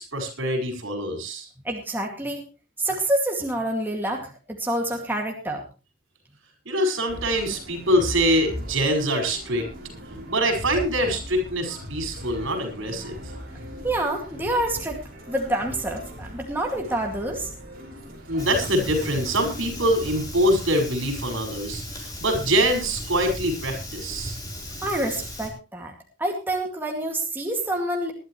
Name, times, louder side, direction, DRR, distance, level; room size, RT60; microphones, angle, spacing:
voice 1, 0.0-1.5 6.7-9.7 10.1-13.2 18.3-24.4, equal, 75° right, 6 dB, 5.6 m, -24 dB
voice 2, 1.6-2.5 2.8-5.6 13.8-15.0 15.3-17.5 24.8-28.1, right 1 dB, 10° right, 0 dB, 2.3 m, -27 dB
sound 1, 7.1-20.2, equal, 45° right, 5.9 m, -39 dB
Fire, 18.4-25.5, left 1 dB, 20° left, 4.1 m, -36 dB
21.0 x 12.0 x 3.2 m, 0.30 s
head